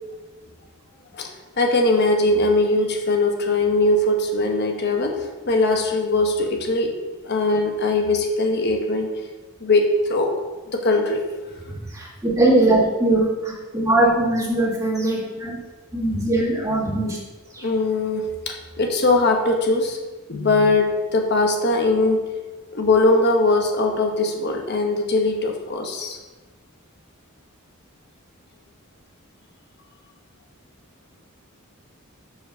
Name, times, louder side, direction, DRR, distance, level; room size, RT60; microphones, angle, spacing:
voice 1, 1.6-7.0 7.2-9.1 9.6-10.3 10.7-11.2 17.6-20.0 20.3-22.2 22.7-26.2, left 2 dB, 50° left, 2 dB, 1.0 m, -20 dB
voice 2, 11.7-15.6 15.9-17.2 17.5-17.7, right 2 dB, 15° right, -6 dB, 1.9 m, -21 dB
7.0 x 4.7 x 5.5 m, 1.2 s
head